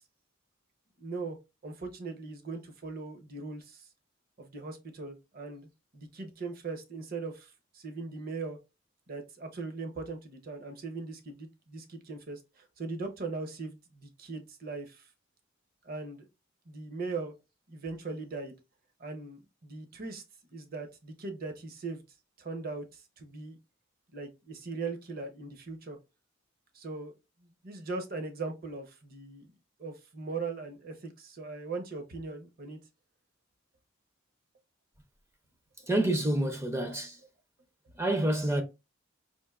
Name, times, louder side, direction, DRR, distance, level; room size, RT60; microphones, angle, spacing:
voice 1, 1.0-1.4 1.6-3.9 4.4-5.7 5.9-8.6 9.1-15.0 15.8-16.3 16.7-17.3 17.7-18.5 19.0-20.2 20.5-22.0 22.4-23.6 24.1-26.0 26.7-27.1 27.6-29.5 29.8-32.8, right 3 dB, 45° right, 0.7 m, -39 dB
voice 2, 35.9-37.2 38.0-38.6, right 1 dB, 15° right, 0.4 m, -28 dB
4.4 x 2.5 x 2.3 m
head